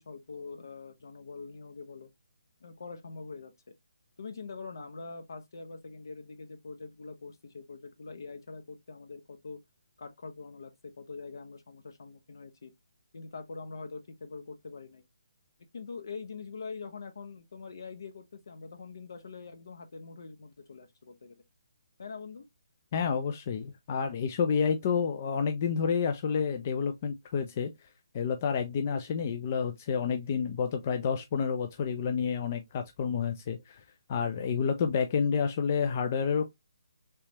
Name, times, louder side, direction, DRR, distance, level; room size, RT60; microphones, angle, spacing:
voice 1, 0.0-2.1 2.6-3.5 4.2-9.6 10.0-12.7 13.1-15.0 15.7-21.4 22.0-22.4, left 4 dB, 65° left, 0.8 m, -44 dB
voice 2, 22.9-27.7 28.1-33.8 34.1-36.5, left 6 dB, 30° left, 0.4 m, -29 dB
3.3 x 3.1 x 2.8 m
hypercardioid pair, 165°, 2 cm